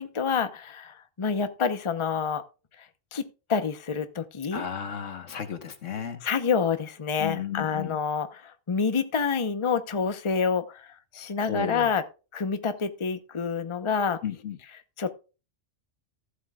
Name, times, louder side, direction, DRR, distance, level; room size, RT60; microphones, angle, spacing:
voice 1, 0.0-2.4 3.1-3.2 3.5-4.6 6.2-8.4 8.7-10.6 11.1-12.0 12.3-14.2 15.0-15.1, left 6 dB, 30° left, 0.8 m, -27 dB
voice 2, 4.5-6.2 7.2-8.0 11.4-11.9 14.2-14.6, left 8 dB, 85° left, 1.6 m, -33 dB
14.5 x 8.2 x 2.3 m
omnidirectional pair, 1.2 m